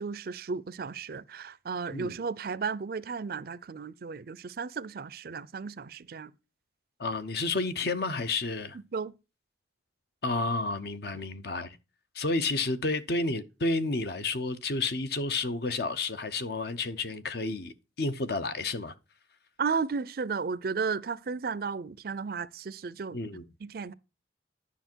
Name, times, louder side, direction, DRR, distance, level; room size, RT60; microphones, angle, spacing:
voice 1, 0.0-6.3 8.9-9.1 19.6-23.2 23.6-23.9, right 5 dB, 50° right, 0.4 m, -34 dB
voice 2, 7.0-8.8 10.2-11.8 12.1-18.9 23.1-23.4, left 3 dB, 55° left, 0.8 m, -31 dB
10.0 x 5.8 x 4.5 m
head